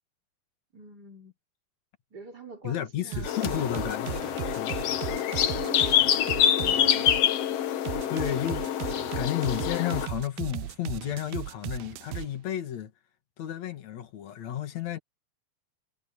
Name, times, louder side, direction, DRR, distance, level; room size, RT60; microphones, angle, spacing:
voice 1, 0.7-1.3 2.1-3.3 5.6-7.2, right 4 dB, 25° right, 4.0 m, -44 dB
voice 2, 2.6-4.8 8.1-8.7 9.2-12.9 13.4-15.0, left 11 dB, 50° left, 2.9 m, -32 dB
sound 1, 3.1-7.3 7.9-12.3, right 17 dB, 80° right, 2.4 m, -36 dB
sound 2, 3.2-10.1, left 10 dB, 70° left, 1.5 m, -26 dB
omnidirectional pair, 4.3 m